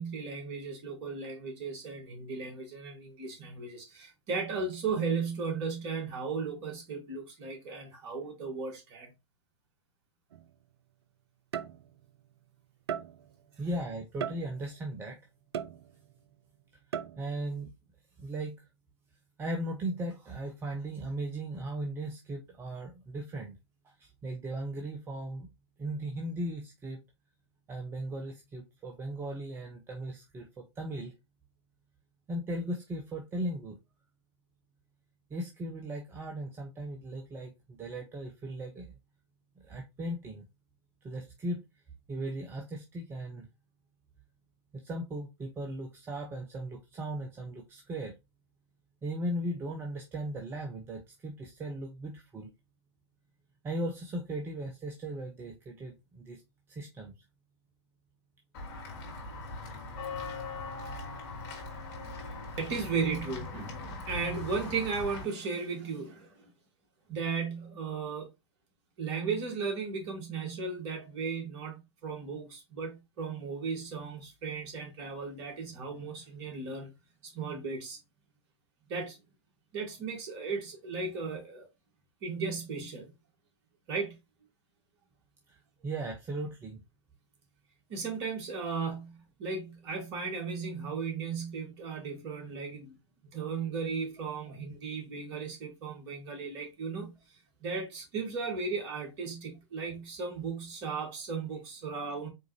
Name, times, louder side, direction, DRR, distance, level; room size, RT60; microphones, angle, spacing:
voice 1, 0.0-9.1 62.6-66.5 67.1-68.3 69.0-76.9 77.3-78.0 78.9-79.2 79.7-81.7 82.2-83.1 83.9-84.2 87.9-93.0 93.3-97.2 97.6-102.3, right 5 dB, 40° right, 2.3 m, -36 dB
sound 1, 10.3-10.5 11.5-12.2 12.9-13.4 14.2-14.8 15.5-16.2 16.9-17.4, right 8 dB, 65° right, 0.4 m, -38 dB
voice 2, 13.6-15.2 17.2-17.7 18.2-18.6 19.4-23.5 23.8-25.5 25.8-27.0 27.7-31.1 32.3-33.8 35.3-38.9 39.6-40.4 41.0-41.6 42.1-43.5 44.7-48.1 49.0-52.5 53.6-56.4 56.7-57.1 85.5-85.6 85.8-86.8 94.2-94.3, right 1 dB, 15° right, 0.7 m, -37 dB
Walk footsteps / Bell, 58.5-65.2, left 3 dB, 45° left, 2.5 m, -40 dB
4.5 x 3.8 x 3.0 m
figure-of-eight pair, 110°, 15 cm